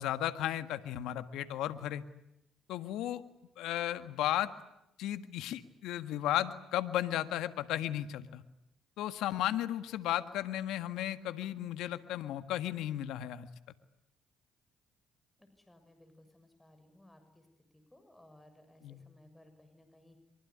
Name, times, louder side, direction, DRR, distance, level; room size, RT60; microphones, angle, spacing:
voice 1, 0.0-2.0 2.7-3.2 3.6-4.5 5.0-8.4 9.0-13.5 18.8-19.0, left 12 dB, 75° left, 11 dB, 1.7 m, -34 dB
voice 2, 15.4-17.5 17.7-20.2, left 1 dB, 10° left, 7 dB, 6.8 m, -60 dB
24.5 x 24.0 x 9.8 m, 0.83 s
hypercardioid pair, 55°, 0 cm